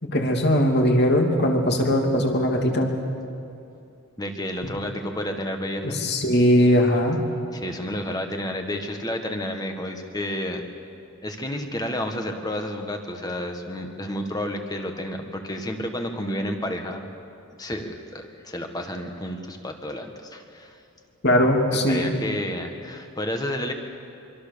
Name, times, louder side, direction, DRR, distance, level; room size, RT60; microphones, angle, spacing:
voice 1, 0.0-2.9 5.8-7.2 21.2-22.1, equal, 50° left, 2 dB, 2.9 m, -20 dB
voice 2, 4.2-6.1 7.5-10.6 11.2-17.1 17.6-20.8 21.7-23.7, left 1 dB, 15° left, 4 dB, 1.7 m, -31 dB
25.0 x 24.5 x 7.0 m, 2.6 s
head